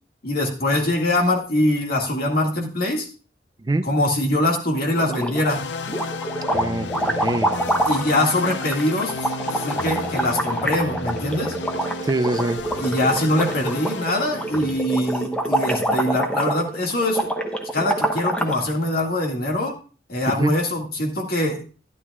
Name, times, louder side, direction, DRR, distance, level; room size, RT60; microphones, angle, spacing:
voice 1, 0.2-3.1 3.8-5.6 7.9-9.2 9.5-11.5 12.8-17.3 17.7-19.8 20.1-21.6, left 1 dB, 60° left, 1 dB, 2.0 m, -23 dB
sound 1, 4.9-5.6 5.9-18.6, right 1 dB, 5° left, 0.9 m, -26 dB
sound 2, 5.5-14.8, left 3 dB, 80° left, 0.6 m, -32 dB
voice 2, 6.5-7.5 12.0-12.6 20.4-20.6, right 2 dB, 20° right, 11 dB, 0.4 m, -24 dB
12.0 x 10.5 x 2.4 m, 0.35 s
head